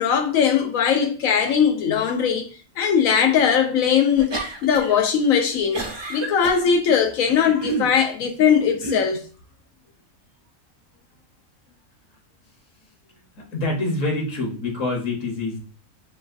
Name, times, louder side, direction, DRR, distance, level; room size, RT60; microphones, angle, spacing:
voice 1, 0.0-2.4 2.8-5.8 6.1-9.2, left 7 dB, 90° left, 1.1 m, -20 dB
sound 1, 4.2-5.0 5.3-6.6 7.3-7.9 8.7-9.1, right 3 dB, 40° right, 0.3 m, -29 dB
voice 2, 13.3-15.6, left 2 dB, 70° left, 1.4 m, -26 dB
6.0 x 2.4 x 2.5 m
omnidirectional pair, 1.4 m